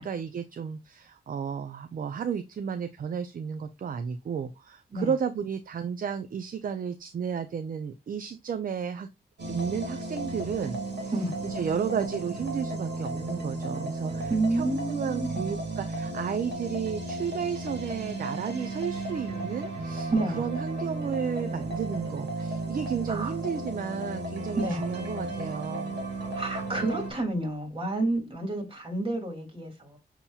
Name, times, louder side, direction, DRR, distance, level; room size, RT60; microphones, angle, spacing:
voice 1, 0.0-9.1 9.5-11.1 11.4-26.0, right 7 dB, 55° right, 0.5 m, -33 dB
sound 1, 9.4-27.1, right 2 dB, 85° right, 1.6 m, -34 dB
voice 2, 14.3-15.4 20.1-20.5 23.1-23.3 24.6-24.9 26.3-30.0, right 2 dB, 30° right, 2.0 m, -29 dB
6.8 x 3.0 x 2.3 m
cardioid pair, 85°, 17 cm